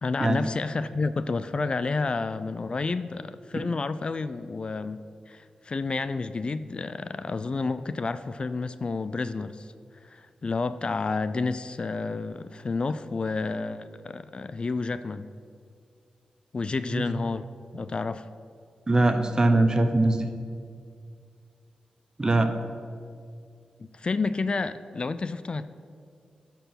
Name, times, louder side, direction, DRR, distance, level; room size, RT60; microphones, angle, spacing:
voice 1, 0.0-5.0 5.3-9.7 10.0-15.3 16.5-17.5 17.7-18.3 23.9-25.7, left 3 dB, 45° left, 13 dB, 0.3 m, -30 dB
voice 2, 18.9-20.3 22.2-22.5, right 2 dB, 30° right, 7 dB, 0.8 m, -22 dB
12.0 x 4.6 x 5.8 m, 2.3 s
cardioid pair, 70°, 2 cm